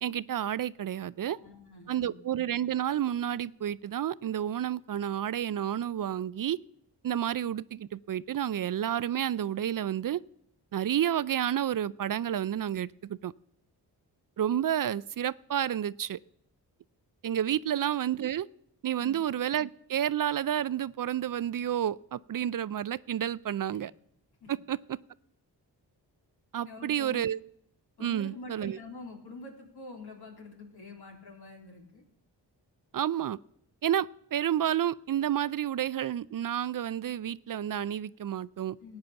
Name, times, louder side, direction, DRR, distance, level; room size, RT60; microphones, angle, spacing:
voice 1, 0.0-1.4 1.9-6.6 7.0-10.2 10.7-13.3 14.4-16.2 17.2-18.5 18.8-23.9 24.5-25.0 26.5-27.4 28.0-28.8 32.9-33.4 33.8-38.8, right 10 dB, 55° right, 19 dB, 0.5 m, -30 dB
voice 2, 1.2-2.2 17.6-17.7 19.0-19.2 23.7-23.8 24.4-24.5 26.6-27.2 28.0-32.0 38.8-39.0, left 3 dB, 65° left, 0 dB, 3.7 m, -46 dB
14.0 x 9.0 x 7.0 m, 0.71 s
cardioid pair, 50°, 41 cm